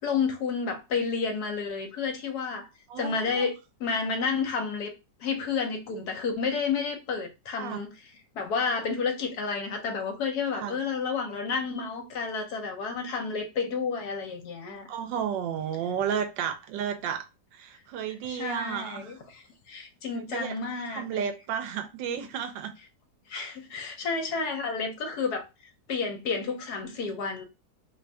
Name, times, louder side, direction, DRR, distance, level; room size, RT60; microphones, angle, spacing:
voice 1, 0.0-2.7 3.0-3.5 3.8-4.9 5.2-7.9 8.3-14.9 18.2-21.2 23.3-25.5 25.9-27.4, left 5 dB, 70° left, 1.1 m, -30 dB
voice 2, 2.9-3.5 7.6-7.8 10.5-10.8 14.9-17.2 17.5-19.1 20.1-22.7, right 8 dB, 85° right, 1.3 m, -32 dB
3.1 x 2.5 x 3.3 m
omnidirectional pair, 2.0 m